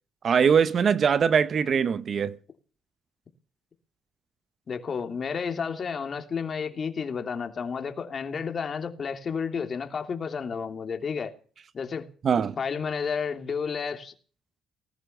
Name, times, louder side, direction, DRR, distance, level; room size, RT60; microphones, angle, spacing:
voice 1, 0.2-2.4 12.2-12.6, right 7 dB, 50° right, 0.9 m, -22 dB
voice 2, 4.7-11.3 11.7-12.1 12.6-14.1, left 6 dB, 45° left, 3.0 m, -31 dB
20.0 x 10.5 x 6.8 m
cardioid pair, 90°, 0 cm